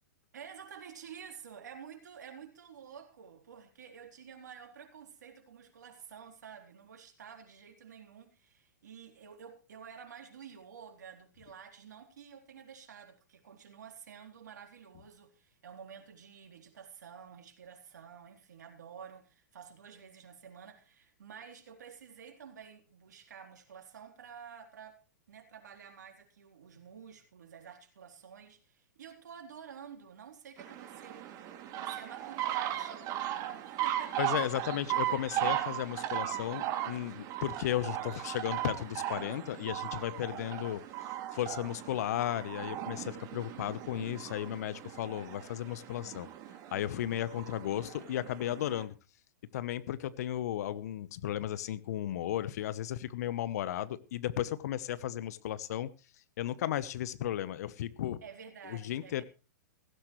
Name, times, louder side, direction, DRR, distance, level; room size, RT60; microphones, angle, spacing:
voice 1, 0.3-25.0 25.3-31.3 31.7-34.5 58.2-59.2, right 7 dB, 70° right, 3.7 m, -51 dB
sound 1, 30.6-48.9, right 13 dB, 40° right, 2.7 m, -37 dB
voice 2, 34.2-46.3 46.7-48.9 49.5-55.9 56.4-58.2 58.7-59.2, left 12 dB, 60° left, 1.1 m, -35 dB
16.5 x 16.0 x 3.2 m
hypercardioid pair, 105°, 10 cm